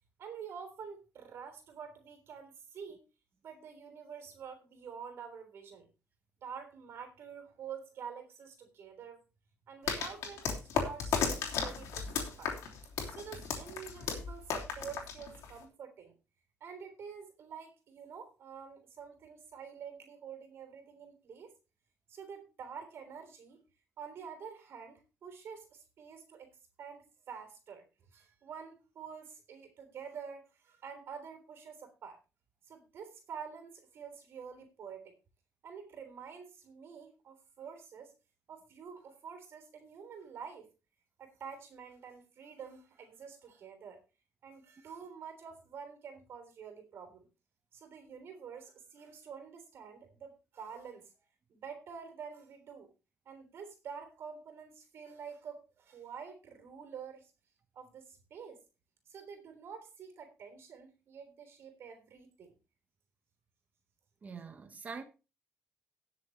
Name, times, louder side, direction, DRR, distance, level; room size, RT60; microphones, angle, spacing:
voice 1, 0.2-3.0 3.4-5.9 6.4-9.2 9.7-12.5 13.1-16.1 16.6-21.5 22.1-23.6 24.0-26.5 26.8-27.8 28.1-32.2 32.7-35.2 35.6-38.1 38.5-40.7 41.2-44.0 44.4-47.3 47.7-51.1 51.5-52.9 53.2-57.3 57.7-58.6 59.1-62.5, right 6 dB, 55° right, 3.4 m, -48 dB
sound 1, 9.9-15.6, left 6 dB, 80° left, 3.3 m, -35 dB
voice 2, 64.2-65.0, right 5 dB, 30° right, 1.0 m, -44 dB
19.0 x 7.1 x 3.1 m
cardioid pair, 145°, 5 cm